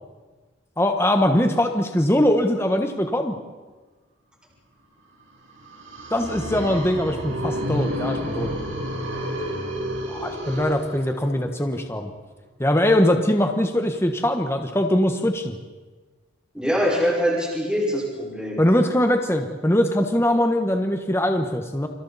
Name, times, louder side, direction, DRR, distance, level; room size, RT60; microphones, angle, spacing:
voice 1, 0.8-3.4 6.1-8.5 10.1-12.1 12.6-15.6 18.6-21.9, left 1 dB, 15° left, 5 dB, 1.3 m, -21 dB
sound 1, 5.5-11.4, equal, 75° right, 6.0 m, -30 dB
voice 2, 16.5-18.6, equal, 5° right, -4 dB, 5.3 m, -23 dB
29.5 x 26.0 x 4.2 m, 1.3 s
head